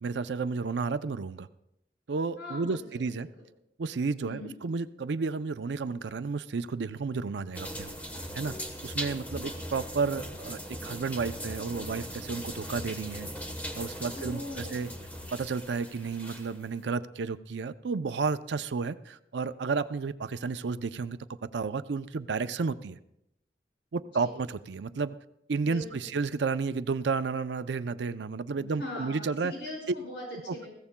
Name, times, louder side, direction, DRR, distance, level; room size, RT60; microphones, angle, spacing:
voice 1, 0.0-1.5 2.1-3.3 3.8-7.9 8.3-8.5 8.8-13.3 13.8-14.9 15.3-23.0 23.9-25.2 25.5-29.5 30.5-30.6, right 4 dB, 85° right, 12 dB, 0.5 m, -32 dB
voice 2, 2.4-3.4 4.2-4.5 14.1-14.8 24.1-24.3 25.6-26.2 28.6-30.7, left 1 dB, 90° left, -2 dB, 5.3 m, -41 dB
sound 1, 7.5-16.7, equal, 10° left, 1.1 m, -39 dB
21.0 x 15.5 x 2.2 m, 0.80 s
head